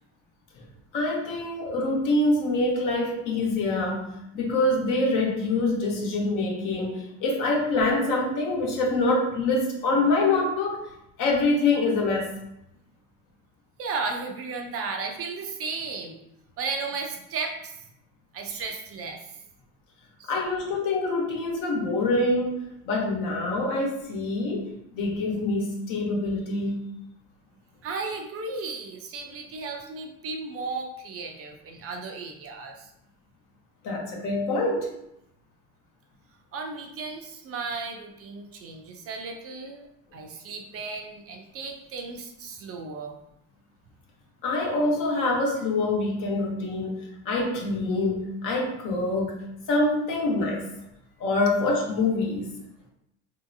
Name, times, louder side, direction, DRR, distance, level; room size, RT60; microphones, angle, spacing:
voice 1, 0.9-4.1 4.3-10.9 11.2-12.3 20.3-26.8 33.8-34.9 44.4-49.3 49.7-50.7 51.2-52.5, left 2 dB, 65° left, -1 dB, 1.0 m, -25 dB
voice 2, 13.8-16.2 16.6-17.8 18.3-19.4 20.2-20.4 27.8-32.9 36.5-39.9 40.1-43.2, right 4 dB, 40° right, 3 dB, 0.5 m, -34 dB
3.0 x 2.7 x 2.6 m, 0.80 s
cardioid pair, 115°, 35 cm